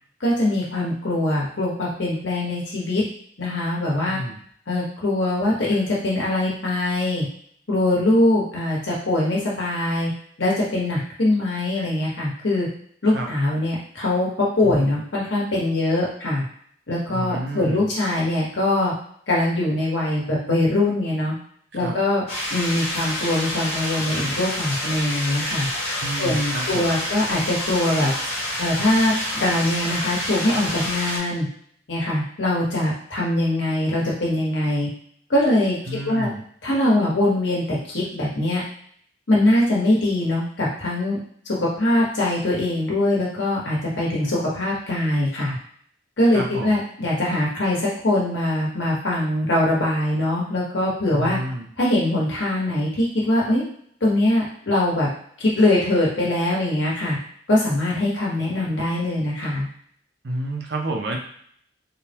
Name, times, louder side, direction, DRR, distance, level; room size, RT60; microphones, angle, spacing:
voice 1, 0.2-3.0 3.4-4.2 4.7-7.2 7.7-10.1 10.4-12.7 13.0-14.3 14.6-16.4 16.9-18.9 19.3-21.3 21.7-22.2 22.5-25.7 26.2-28.1 28.6-31.5 31.9-34.9 35.3-35.8 36.0-36.3 36.6-38.6 39.3-41.2 41.5-45.5 46.2-51.4 51.8-53.6 54.0-55.1 55.4-57.2 57.5-59.7, left 1 dB, 75° left, -5 dB, 1.2 m, -22 dB
voice 2, 4.1-4.4 13.1-13.3 14.6-15.0 17.1-17.9 21.7-22.0 26.0-26.9 35.9-36.4 46.3-46.8 51.1-51.7 60.2-61.2, right 1 dB, 65° right, 1 dB, 0.6 m, -30 dB
sound 1, 22.3-31.2, left 1 dB, 30° left, 1.0 m, -28 dB
3.6 x 2.2 x 2.8 m, 0.62 s
head